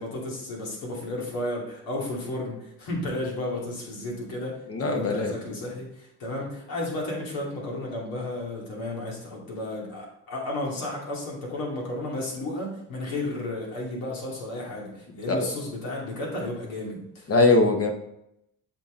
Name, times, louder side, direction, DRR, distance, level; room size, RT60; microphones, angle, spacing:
voice 1, 0.0-17.3, left 1 dB, 75° left, -2 dB, 2.6 m, -33 dB
voice 2, 4.7-5.3 15.3-15.5 17.3-17.9, left 3 dB, 40° left, 4 dB, 1.2 m, -21 dB
7.5 x 4.4 x 3.8 m, 0.80 s
supercardioid pair, 80°, 35 cm